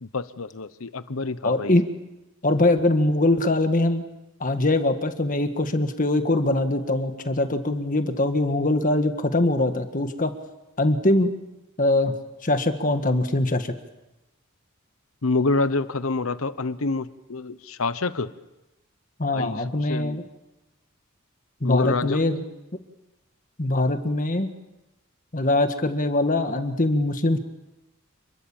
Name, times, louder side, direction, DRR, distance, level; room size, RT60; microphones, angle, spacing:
voice 1, 0.0-1.7 15.2-18.3 19.3-20.2 21.6-22.2, left 3 dB, 75° left, 14 dB, 1.0 m, -27 dB
voice 2, 1.4-1.8 2.4-4.0 4.4-10.3 10.8-11.3 11.8-12.1 12.4-13.7 19.2-20.2 21.6-22.4 23.6-24.5 25.3-27.4, left 2 dB, 40° left, 8 dB, 1.6 m, -22 dB
28.5 x 22.0 x 7.3 m, 0.98 s
head